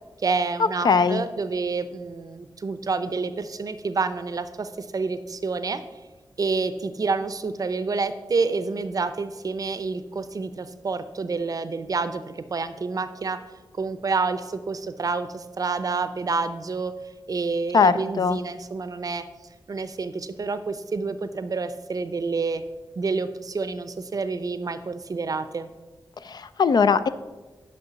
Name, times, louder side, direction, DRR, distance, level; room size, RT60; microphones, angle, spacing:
voice 1, 0.2-5.8 6.4-13.4 13.7-16.9 17.3-19.2 19.7-22.6 23.0-25.7, right 4 dB, 45° right, 12 dB, 0.5 m, -28 dB
voice 2, 0.8-1.2 17.7-18.4 26.2-27.1, left 5 dB, 55° left, 13 dB, 0.4 m, -20 dB
6.7 x 5.4 x 6.9 m, 1.2 s
wide cardioid pair, 105°, 8 cm